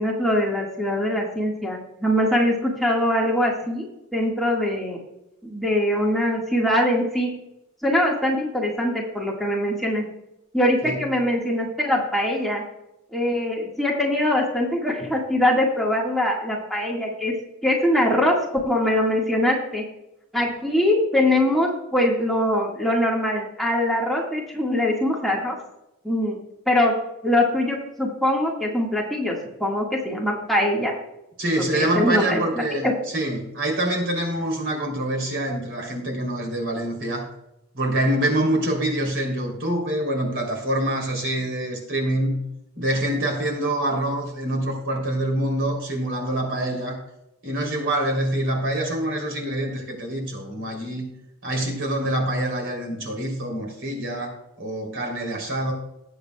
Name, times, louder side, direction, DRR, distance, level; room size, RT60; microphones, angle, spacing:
voice 1, 0.0-3.9 4.1-5.0 5.4-7.3 7.8-10.0 10.5-12.6 13.1-17.3 17.6-19.8 20.3-25.6 26.0-26.4 26.7-26.9 27.2-29.4 29.6-30.9 31.7-32.9, left 1 dB, ahead, -3 dB, 1.7 m, -22 dB
voice 2, 31.4-37.3 37.7-42.4 42.8-47.0 47.4-51.1 51.4-55.7, right 1 dB, 60° right, 1 dB, 3.2 m, -25 dB
19.5 x 8.1 x 2.3 m, 0.88 s
head